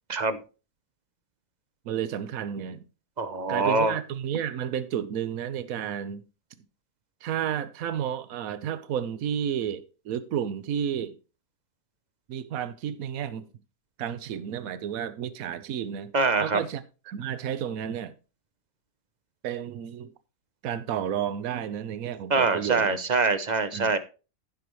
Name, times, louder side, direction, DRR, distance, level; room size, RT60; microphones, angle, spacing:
voice 1, 0.1-0.4 3.2-3.9 16.1-16.6 22.3-24.0, right 3 dB, 35° right, 0.7 m, -24 dB
voice 2, 1.8-2.8 3.5-6.2 6.6-6.7 7.2-11.2 12.3-13.5 14.0-16.1 16.4-18.1 19.4-20.1 20.6-23.0 23.7-23.9, right 9 dB, 70° right, 1.2 m, -32 dB
15.5 x 6.0 x 3.1 m
omnidirectional pair, 1.6 m